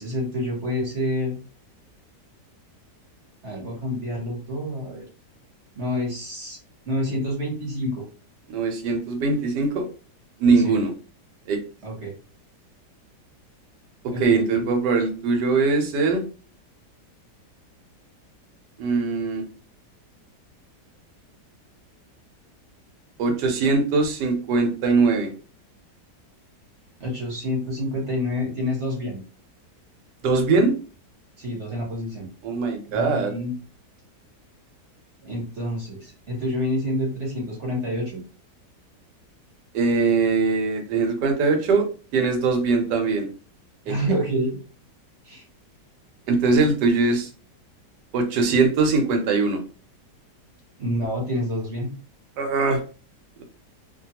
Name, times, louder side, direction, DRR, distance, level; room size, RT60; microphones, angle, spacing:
voice 1, 0.0-1.4 3.4-5.0 5.8-6.6 6.9-8.1 10.6-10.8 11.8-12.1 14.1-14.7 27.0-29.2 31.4-32.3 32.9-33.5 35.2-38.2 43.9-44.6 45.2-45.4 50.8-51.9, left 1 dB, 50° right, -2 dB, 1.1 m, -28 dB
voice 2, 8.5-9.9 10.4-10.9 11.5-11.6 14.0-16.2 18.8-19.4 23.2-25.3 30.2-30.7 32.4-33.3 39.7-41.9 42.1-43.3 43.9-44.0 46.3-47.3 48.1-49.6 52.4-52.8, right 4 dB, 75° right, 5 dB, 1.2 m, -21 dB
2.9 x 2.2 x 2.8 m, 0.37 s
omnidirectional pair, 1.8 m